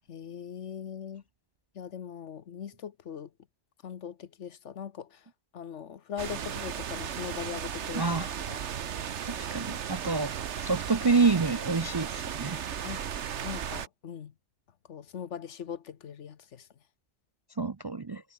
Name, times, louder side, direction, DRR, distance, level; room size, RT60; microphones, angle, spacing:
voice 1, 0.1-1.2 1.7-3.3 3.8-5.2 5.5-8.2 8.5-8.6 12.8-13.0 13.4-14.3 14.9-16.7, left 8 dB, 80° left, 1.3 m, -40 dB
sound 1, 6.2-13.9, right 8 dB, 75° right, 1.3 m, -36 dB
voice 2, 8.0-8.3 9.3-12.6 17.6-18.2, right 4 dB, 35° right, 0.4 m, -28 dB
omnidirectional pair, 1.2 m